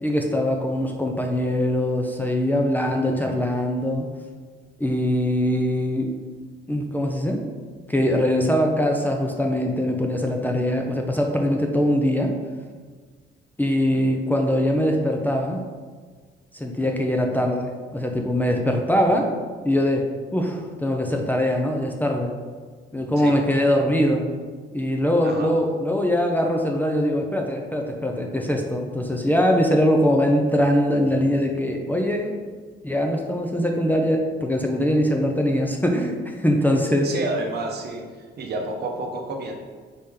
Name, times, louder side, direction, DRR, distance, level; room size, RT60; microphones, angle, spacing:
voice 1, 0.0-4.1 4.8-6.1 6.7-7.4 7.9-12.3 13.6-15.6 16.5-19.3 19.6-20.1 20.3-22.3 22.9-24.2 24.7-32.4 32.8-37.2, equal, 10° left, 1 dB, 0.5 m, -22 dB
voice 2, 13.9-14.3 23.2-23.4 25.2-25.6 37.0-38.0 38.4-39.5, right 2 dB, 55° right, 2 dB, 0.7 m, -30 dB
4.2 x 3.4 x 3.5 m, 1.5 s
cardioid pair, 90°, 20 cm